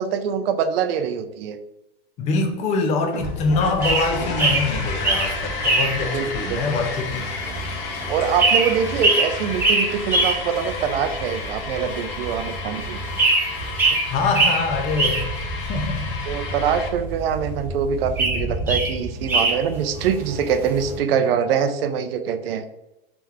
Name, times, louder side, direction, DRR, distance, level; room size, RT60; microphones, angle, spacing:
voice 1, 0.0-1.6 6.1-6.6 8.1-13.0 13.9-14.0 16.3-22.6, right 7 dB, 70° right, 9 dB, 0.6 m, -24 dB
voice 2, 2.2-7.2 14.0-16.1, left 4 dB, 25° left, 4 dB, 0.5 m, -24 dB
sound 1, 3.1-16.9, left 3 dB, 55° left, 1.1 m, -32 dB
sound 2, 3.2-21.0, right 2 dB, 5° right, 0.8 m, -24 dB
3.3 x 3.0 x 3.5 m, 0.92 s
supercardioid pair, 145°, 30 cm